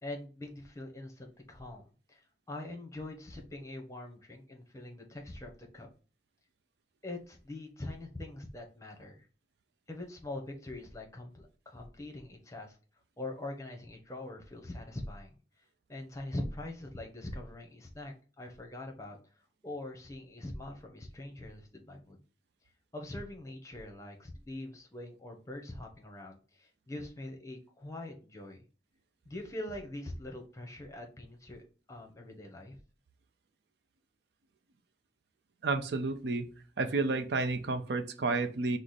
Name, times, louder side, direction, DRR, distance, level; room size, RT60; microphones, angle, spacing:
voice 1, 0.0-2.2 2.5-5.9 7.0-9.2 9.9-12.8 13.2-15.3 15.9-19.2 19.6-22.2 22.9-28.6 29.2-32.8, left 1 dB, 20° left, 1 dB, 0.8 m, -43 dB
voice 2, 35.6-36.5 36.8-38.8, right 3 dB, 70° right, 7 dB, 0.5 m, -31 dB
4.7 x 2.0 x 4.0 m, 0.37 s
head